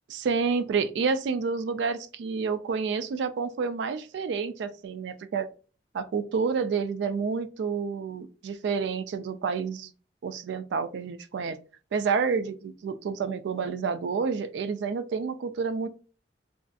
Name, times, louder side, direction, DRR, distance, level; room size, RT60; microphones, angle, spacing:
voice 1, 0.1-5.5 5.9-9.9 10.2-11.6 11.9-15.9, right 5 dB, 75° right, 12 dB, 0.3 m, -29 dB
2.5 x 2.5 x 2.2 m, 0.36 s
head